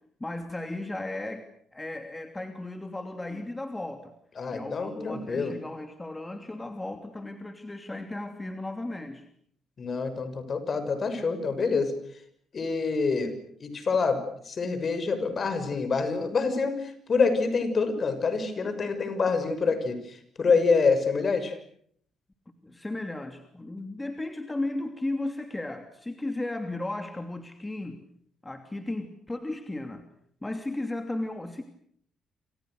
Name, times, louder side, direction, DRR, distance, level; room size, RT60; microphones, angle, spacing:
voice 1, 0.2-1.5 1.7-4.1 4.5-9.3 22.6-28.0 28.4-30.1 30.4-31.6, left 2 dB, 15° left, 6 dB, 2.9 m, -35 dB
voice 2, 4.4-5.5 9.8-11.9 12.5-13.3 13.6-21.6, left 4 dB, 45° left, 10 dB, 6.5 m, -26 dB
29.0 x 28.0 x 6.6 m, 0.64 s
cardioid pair, 90°, 0 cm